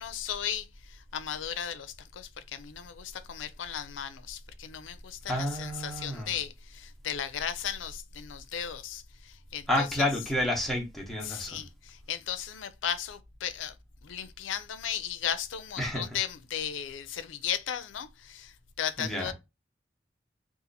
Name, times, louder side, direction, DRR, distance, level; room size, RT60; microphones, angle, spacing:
voice 1, 0.0-10.1 11.2-13.7 14.0-19.3, left 9 dB, 90° left, 0.4 m, -36 dB
voice 2, 5.3-6.3 9.7-11.6 15.8-16.0 19.0-19.3, left 1 dB, ahead, 0.9 m, -30 dB
2.7 x 2.4 x 3.9 m
head